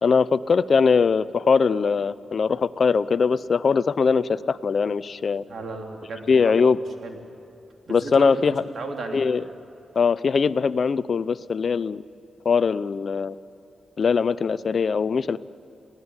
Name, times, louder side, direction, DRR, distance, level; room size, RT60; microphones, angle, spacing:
voice 1, 0.0-5.4 6.3-6.8 7.9-8.6 9.1-9.4 10.0-12.0 12.4-13.3 14.0-15.4, left 5 dB, 60° left, 17 dB, 0.7 m, -21 dB
voice 2, 5.5-6.7 7.0-7.2 7.9-9.2, right 3 dB, 65° right, 3 dB, 3.5 m, -35 dB
28.5 x 17.0 x 9.7 m, 2.8 s
cardioid pair, 55°, 0 cm